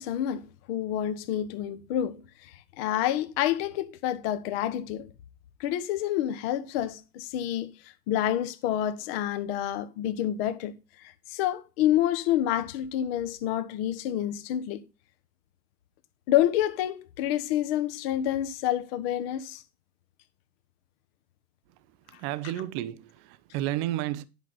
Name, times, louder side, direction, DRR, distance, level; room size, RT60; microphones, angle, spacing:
voice 1, 0.0-5.1 5.6-7.7 8.1-14.8 16.3-19.6, left 12 dB, 35° left, 1.2 m, -28 dB
voice 2, 22.1-24.2, right 14 dB, 25° right, 0.7 m, -32 dB
11.0 x 6.2 x 4.2 m
figure-of-eight pair, 105°, 48 cm